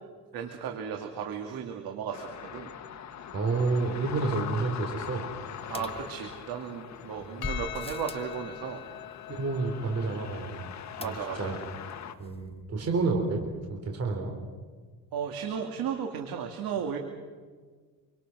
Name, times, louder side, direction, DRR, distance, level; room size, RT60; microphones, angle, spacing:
voice 1, 0.3-2.7 5.7-8.8 11.0-11.6 15.1-17.0, right 7 dB, 75° right, 4 dB, 2.6 m, -35 dB
sound 1, 2.1-12.1, left 8 dB, 50° left, 1.9 m, -42 dB
voice 2, 3.3-5.2 7.3-7.4 9.3-10.6 11.0-11.6 12.2-14.3, right 3 dB, 45° right, 2 dB, 4.2 m, -30 dB
sound 2, 5.7-6.7 7.4-8.3 11.0-11.6 11.9-12.0 12.2-12.3, left 3 dB, 15° left, 1.2 m, -40 dB
Percussion, 7.4-12.0, left 14 dB, 75° left, 1.3 m, -44 dB
26.5 x 25.0 x 6.4 m, 1.5 s
cardioid pair, 130°, 36 cm